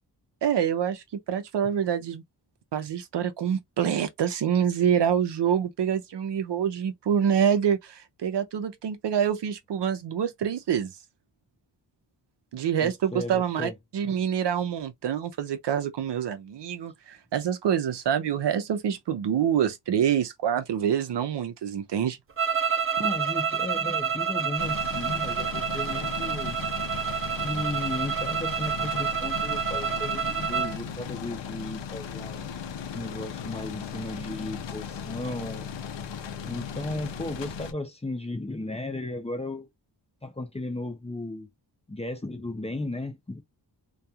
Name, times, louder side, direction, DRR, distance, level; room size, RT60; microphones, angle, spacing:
voice 1, 0.4-2.2 2.7-10.9 12.5-22.2, right 8 dB, 70° right, 0.6 m, -26 dB
voice 2, 12.8-13.7 23.0-26.6 27.3-32.5 32.9-35.7 36.4-39.7 40.2-41.5 41.9-43.4, left 2 dB, 15° left, 0.5 m, -35 dB
sound 1, 22.4-30.8, right 6 dB, 30° right, 0.5 m, -28 dB
sound 2, 24.6-37.7, left 6 dB, 85° left, 0.6 m, -37 dB
2.3 x 2.3 x 2.7 m
wide cardioid pair, 130°, 43 cm